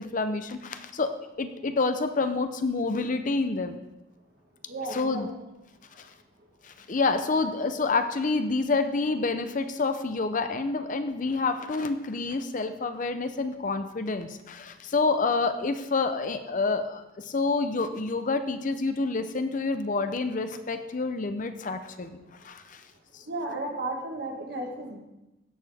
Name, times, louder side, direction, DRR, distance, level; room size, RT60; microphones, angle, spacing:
voice 1, 0.0-3.8 4.9-5.3 6.0-6.1 6.6-22.8 23.1-23.2, left 3 dB, 40° left, 9 dB, 0.6 m, -28 dB
voice 2, 4.7-5.3 23.3-25.0, right 2 dB, 55° right, 2 dB, 1.5 m, -34 dB
16.0 x 6.5 x 3.5 m, 0.97 s
head